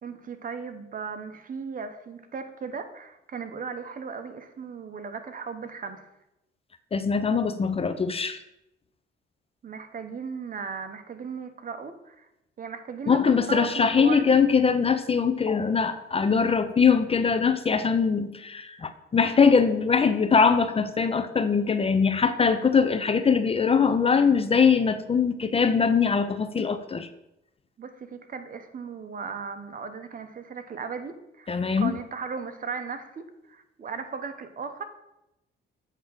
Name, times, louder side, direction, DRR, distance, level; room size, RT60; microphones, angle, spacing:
voice 1, 0.0-6.1 9.6-12.3 12.6-13.2 13.5-14.4 27.8-34.8, right 5 dB, 45° right, 8 dB, 0.9 m, -37 dB
voice 2, 6.9-8.4 13.1-27.1 31.5-31.9, left 5 dB, 30° left, 10 dB, 0.5 m, -22 dB
8.0 x 3.6 x 6.4 m, 0.88 s
cardioid pair, 90°, 20 cm